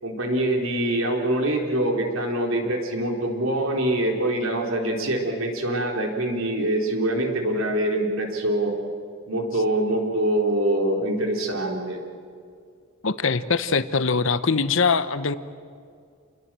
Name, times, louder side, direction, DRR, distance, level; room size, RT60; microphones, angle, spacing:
voice 1, 0.0-8.7 9.3-12.0, right 1 dB, 65° right, 2 dB, 4.0 m, -24 dB
voice 2, 13.0-15.3, left 4 dB, 60° left, 13 dB, 1.0 m, -22 dB
28.5 x 21.0 x 7.7 m, 2.2 s
head